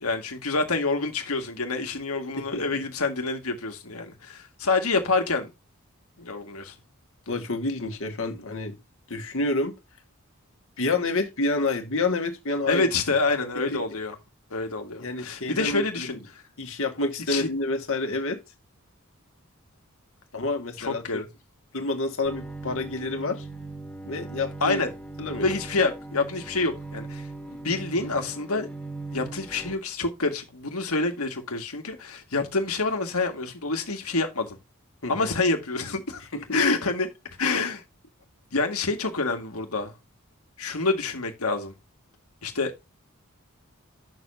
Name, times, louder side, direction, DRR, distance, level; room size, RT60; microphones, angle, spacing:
voice 1, 0.0-5.5 6.2-6.8 12.7-14.1 14.5-16.4 17.3-17.5 20.8-21.2 24.6-24.9 25.4-28.7 29.1-34.6 35.1-36.2 36.5-37.1 37.4-37.8 38.5-39.9 40.6-41.7 42.4-42.9, left 3 dB, 85° left, 2.1 m, -27 dB
voice 2, 2.4-2.8 7.3-8.8 9.1-9.7 10.8-12.9 13.7-13.8 15.0-16.1 16.6-18.4 20.3-21.3 21.7-23.4 24.0-24.8 25.2-25.5 35.0-35.3 36.3-36.6, left 2 dB, 65° left, 2.0 m, -28 dB
Bowed string instrument, 22.2-29.7, right 2 dB, 5° left, 1.8 m, -39 dB
9.1 x 6.9 x 2.8 m
head